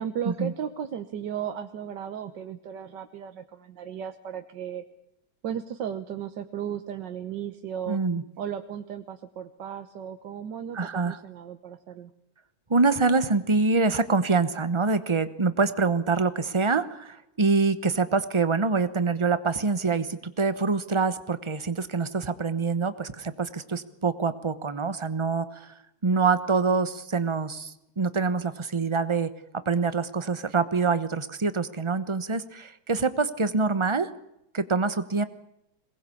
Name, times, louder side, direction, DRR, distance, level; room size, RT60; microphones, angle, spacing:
voice 1, 0.0-4.8 5.4-8.0 8.4-12.1, right 9 dB, 65° right, 8 dB, 1.6 m, -35 dB
voice 2, 7.9-8.2 10.7-11.2 12.7-25.7 26.0-29.3 29.7-34.1 34.5-35.2, right 4 dB, 30° right, 12 dB, 0.5 m, -25 dB
22.0 x 19.5 x 8.5 m, 0.82 s
omnidirectional pair, 2.2 m